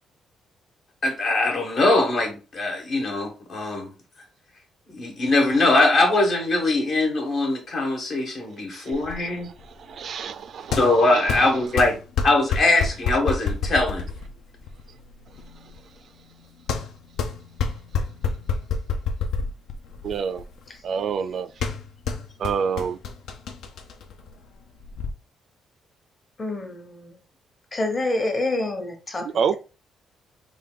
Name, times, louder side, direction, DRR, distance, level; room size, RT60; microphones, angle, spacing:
voice 1, 1.0-3.9 4.9-9.5 10.8-12.0 12.2-14.1, left 2 dB, 60° left, 1.3 m, -21 dB
sound 1, 8.9-25.1, left 5 dB, 80° left, 0.5 m, -30 dB
voice 2, 9.9-10.8 11.1-11.2 20.0-20.4 20.8-21.5 22.4-23.0 29.2-29.6, right 6 dB, 60° right, 0.3 m, -26 dB
voice 3, 26.4-27.2 27.7-29.3, left 2 dB, 35° left, 1.0 m, -27 dB
3.4 x 2.5 x 3.7 m
cardioid pair, 90°, 0 cm